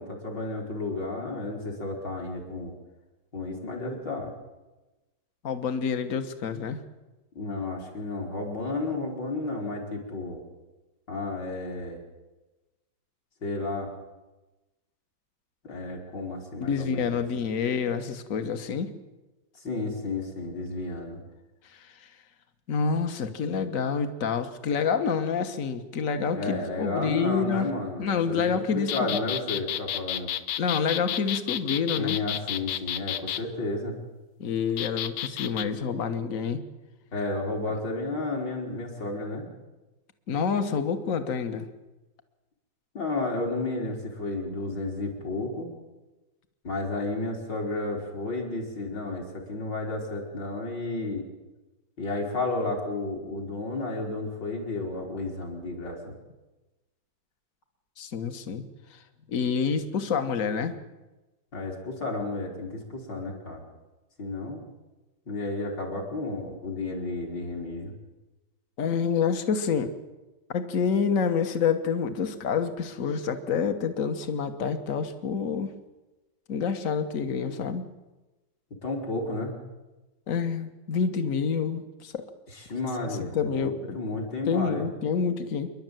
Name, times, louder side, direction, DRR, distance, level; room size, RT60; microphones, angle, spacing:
voice 1, 0.0-2.7 3.3-4.3 7.3-10.4 11.1-12.0 13.4-13.9 15.6-17.2 19.6-21.2 26.3-30.3 32.0-34.0 37.1-39.5 42.9-45.7 46.6-51.2 52.0-56.0 61.5-63.6 64.2-64.6 65.3-67.9 78.8-79.5 82.5-84.9, left 2 dB, 60° left, -1 dB, 4.8 m, -32 dB
voice 2, 5.4-6.8 16.6-18.9 21.7-21.9 22.7-27.7 28.0-29.2 30.6-32.2 34.4-36.6 40.3-41.7 58.0-58.6 58.9-59.0 59.3-60.8 68.8-69.9 70.5-75.7 76.5-77.9 80.3-82.2 83.0-84.0 84.5-85.7, left 6 dB, 45° left, 9 dB, 1.6 m, -28 dB
Animal Cricket Toy, 28.9-33.4 34.8-35.7, left 11 dB, 85° left, 1.7 m, -31 dB
27.5 x 11.5 x 9.2 m, 1.1 s
omnidirectional pair, 2.1 m